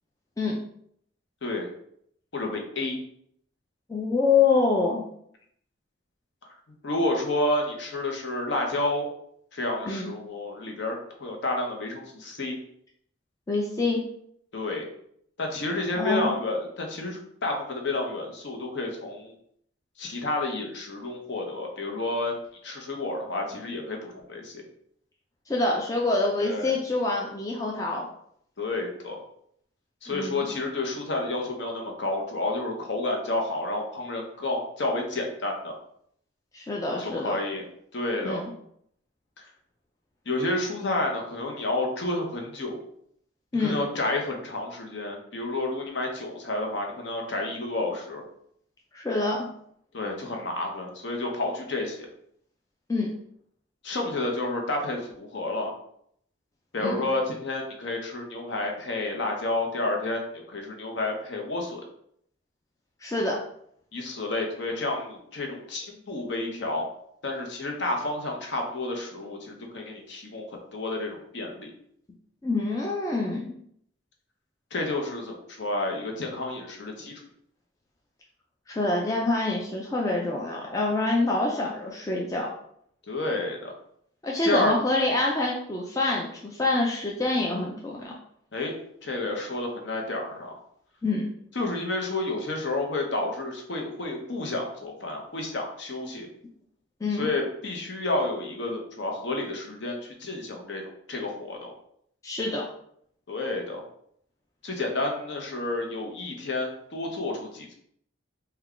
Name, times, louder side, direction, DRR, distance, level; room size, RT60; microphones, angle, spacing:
voice 1, 2.3-3.0 6.8-9.1 9.5-10.9 11.2-12.6 14.5-14.9 15.4-19.3 20.0-22.3 22.6-24.5 26.4-26.7 28.6-29.2 30.0-35.7 37.0-37.7 37.9-38.4 39.4-39.5 40.3-42.8 43.6-48.2 49.9-52.1 53.8-55.7 56.7-61.8 63.9-66.8 67.2-70.4 70.7-71.7 74.7-77.1 83.1-83.7 84.4-84.7 88.5-88.7 89.0-90.5 91.6-96.3 97.2-100.8 101.1-101.7 103.3-103.8 104.6-107.7, left 2 dB, 60° left, 1 dB, 0.7 m, -30 dB
voice 2, 3.9-5.0 9.9-10.1 13.5-14.1 16.0-16.4 25.5-28.1 30.1-30.5 36.5-37.4 38.2-38.5 43.5-43.8 48.9-49.5 52.9-53.1 56.8-57.0 63.0-63.4 72.4-73.5 78.7-82.5 84.2-88.1 91.0-91.3 97.0-97.3 102.2-102.6, left 3 dB, 15° left, -2 dB, 0.3 m, -26 dB
3.4 x 2.2 x 3.6 m, 0.68 s
head